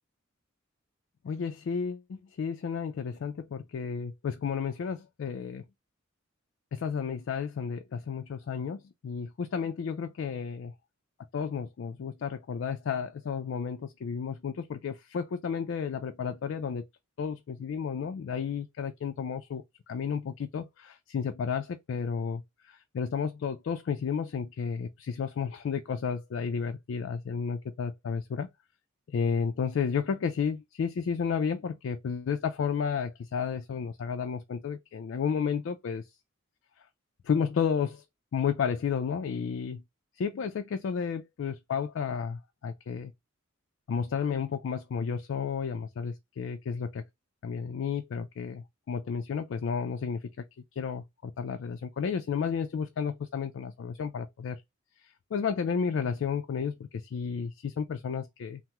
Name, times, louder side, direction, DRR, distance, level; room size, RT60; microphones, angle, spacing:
voice 1, 1.2-5.6 6.7-10.7 11.3-16.8 17.2-28.5 29.1-36.1 37.2-38.0 38.3-39.8 40.1-43.1 43.9-47.0 47.4-50.2 50.8-54.6 55.0-58.6, left 6 dB, 60° left, 0.3 m, -32 dB
3.4 x 2.0 x 2.8 m
head